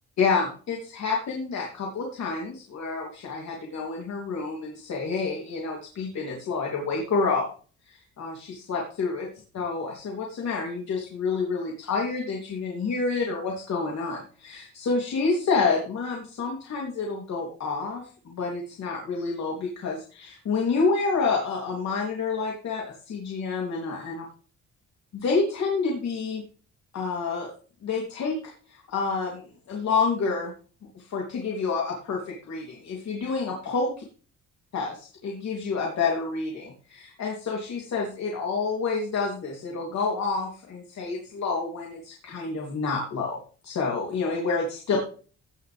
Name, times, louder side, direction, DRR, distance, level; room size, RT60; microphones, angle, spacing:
voice 1, 0.2-7.4 7.9-9.3 9.5-24.2 25.1-26.4 26.9-27.5 27.8-30.5 30.9-33.9 34.7-43.4 43.6-45.0, left 4 dB, 65° left, -1 dB, 3.1 m, -28 dB
17.5 x 6.5 x 3.5 m, 0.40 s
cardioid pair, 90°, 30 cm